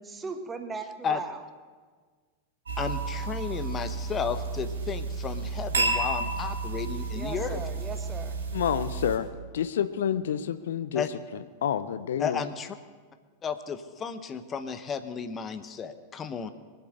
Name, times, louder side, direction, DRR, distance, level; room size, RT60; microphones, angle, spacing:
voice 1, 0.1-1.4 7.1-8.4, right 4 dB, 15° right, 7 dB, 1.3 m, -38 dB
sound 1, 2.7-9.2, right 3 dB, 70° right, 3.0 m, -31 dB
voice 2, 2.8-7.6 10.9-11.1 12.2-12.8 13.4-16.5, left 6 dB, 25° left, 11 dB, 1.0 m, -33 dB
voice 3, 8.5-11.0 11.3-12.4, left 9 dB, 60° left, 13 dB, 0.6 m, -29 dB
23.5 x 8.2 x 6.6 m, 1.5 s
figure-of-eight pair, 90°, 0 cm